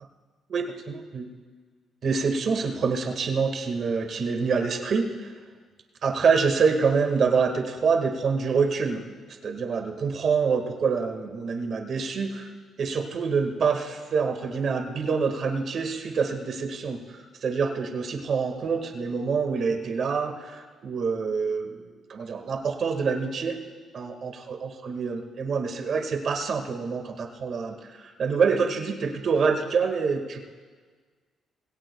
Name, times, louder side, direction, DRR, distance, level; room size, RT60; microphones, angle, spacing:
voice 1, 0.5-1.3 2.0-5.3 6.0-9.0 9.4-12.5 12.8-23.6 23.9-30.4, right 5 dB, 55° right, 4 dB, 1.7 m, -26 dB
21.5 x 17.5 x 2.3 m, 1.5 s
cardioid pair, 90°, 0 cm